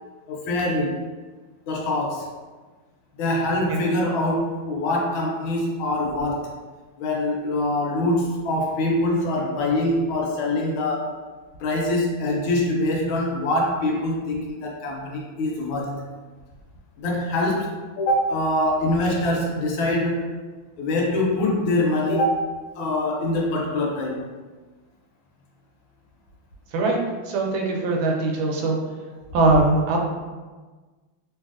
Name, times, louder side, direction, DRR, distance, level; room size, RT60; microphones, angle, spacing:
voice 1, 0.3-1.0 1.7-2.3 3.2-6.5 7.0-11.1 11.6-16.1 17.0-20.3 20.8-22.5 22.8-24.2 27.7-27.8, left 1 dB, 75° left, -1 dB, 1.3 m, -24 dB
voice 2, 27.3-28.8 29.3-30.0, right 2 dB, 90° right, 0 dB, 1.5 m, -21 dB
3.3 x 2.6 x 2.4 m, 1.3 s
omnidirectional pair, 2.3 m